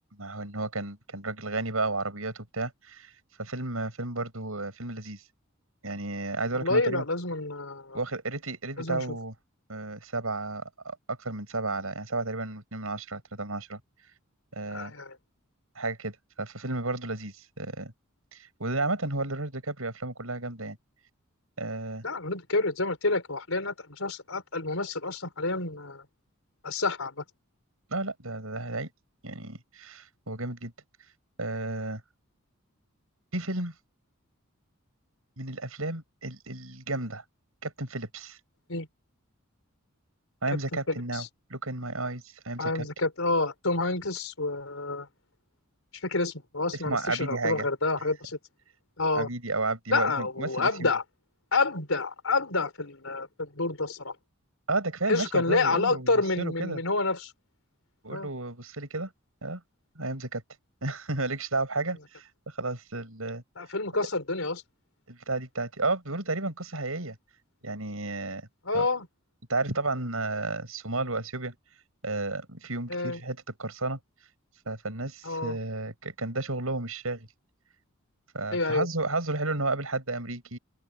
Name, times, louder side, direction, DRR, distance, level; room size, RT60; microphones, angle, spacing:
voice 1, 0.2-3.1 3.4-5.2 5.8-7.0 7.9-9.3 9.7-13.8 14.5-14.9 15.8-17.9 18.3-20.8 21.6-22.0 27.9-28.9 29.2-30.7 31.4-32.0 33.3-33.7 35.4-37.2 37.6-38.4 40.4-42.9 46.7-47.7 49.1-50.9 54.7-56.8 58.0-59.1 59.4-59.6 60.0-60.4 60.8-62.3 62.6-63.4 65.1-67.2 67.6-68.5 68.7-68.9 69.5-71.5 72.0-74.0 74.7-77.3 78.3-80.6, right 2 dB, 80° right, 7.5 m, -32 dB
voice 2, 6.6-8.0 8.8-9.2 14.7-15.2 22.0-26.0 26.6-27.2 38.7-38.9 40.9-41.3 42.6-45.1 46.0-48.4 49.0-49.3 49.9-51.0 51.5-54.1 55.1-57.3 58.1-58.3 63.6-64.6 68.6-69.1 72.9-73.2 75.2-75.6 78.5-78.9, left 3 dB, 75° left, 5.1 m, -28 dB
open air
head